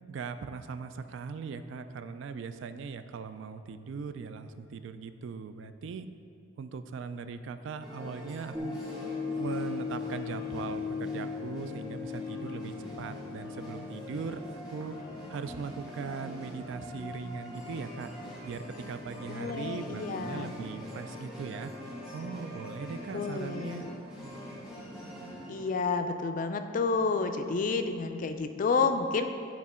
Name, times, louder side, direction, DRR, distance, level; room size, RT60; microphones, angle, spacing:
voice 1, 0.1-6.1 6.6-8.8 9.4-15.0 15.3-18.1 18.4-21.7 22.1-23.9, right 5 dB, 65° right, 10 dB, 0.3 m, -39 dB
sound 1, 7.8-25.7, left 1 dB, 5° right, 1.2 m, -44 dB
sound 2, 8.5-16.9 17.4-17.5, left 5 dB, 30° right, 0.8 m, -39 dB
voice 2, 19.3-20.6 23.1-23.9 25.5-29.3, left 4 dB, 40° left, 7 dB, 0.3 m, -30 dB
9.5 x 3.6 x 4.3 m, 2.5 s
head